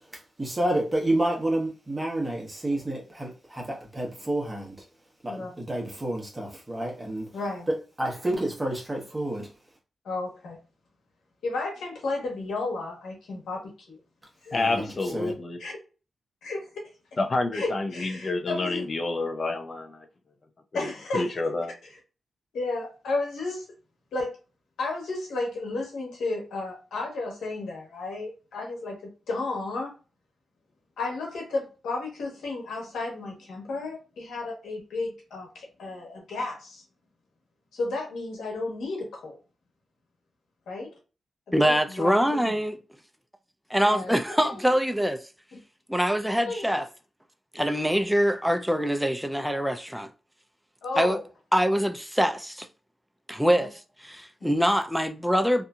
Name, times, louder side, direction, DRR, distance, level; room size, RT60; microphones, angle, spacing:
voice 1, 0.4-4.7 5.2-7.3 7.7-9.5 14.5-14.9 15.1-15.3, right 1 dB, 25° right, 1.1 m, -29 dB
voice 2, 7.3-7.7 10.0-10.6 11.4-14.0 14.4-14.6 15.6-15.8 16.4-16.8 17.5-18.8 20.7-21.3 22.5-23.7 24.1-24.3 24.8-29.0 29.3-29.9 31.0-36.8 37.7-39.4 40.7-40.9 41.5-42.5 43.9-44.7 45.5-45.6 46.5-46.8 50.8-51.2 53.5-53.7 54.4-54.6, left 3 dB, 90° left, 1.1 m, -33 dB
voice 3, 14.5-15.6 17.2-20.1 20.7-21.7, left 2 dB, 50° left, 0.6 m, -29 dB
voice 4, 41.5-42.8 43.7-45.2 45.9-46.9 47.5-50.1 51.0-51.2 51.5-52.7 53.3-55.6, equal, ahead, 0.4 m, -24 dB
2.7 x 2.6 x 2.3 m
cardioid pair, 65°, 0 cm